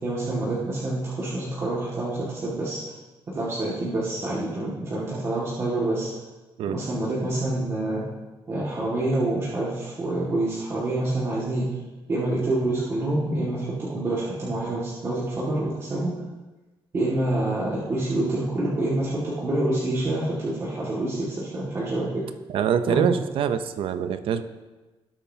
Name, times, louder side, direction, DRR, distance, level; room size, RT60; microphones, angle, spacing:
voice 1, 0.0-2.8 3.3-6.1 6.7-8.0 8.5-11.7 12.1-16.1 16.9-22.2 22.9-23.0, right 2 dB, 30° right, -8 dB, 2.0 m, -27 dB
voice 2, 22.5-24.4, right 8 dB, 65° right, 11 dB, 0.7 m, -24 dB
18.0 x 8.4 x 2.8 m, 1.2 s
cardioid pair, 180°, 10 cm